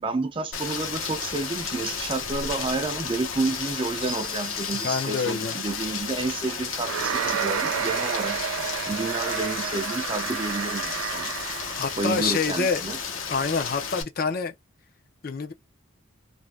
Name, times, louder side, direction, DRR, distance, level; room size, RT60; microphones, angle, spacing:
voice 1, 0.0-8.4 8.9-11.3 12.0-13.0, right 3 dB, 25° right, 0.5 m, -30 dB
Rain, 0.5-14.0, left 6 dB, 80° left, 0.8 m, -33 dB
sound 1, 4.1-5.8, left 2 dB, 45° right, 0.9 m, -39 dB
voice 2, 4.7-5.6 11.7-12.9 13.3-14.5 15.2-15.5, left 5 dB, 45° left, 0.5 m, -27 dB
sound 2, 6.8-12.2, right 8 dB, 85° right, 0.3 m, -30 dB
2.5 x 2.1 x 3.2 m
head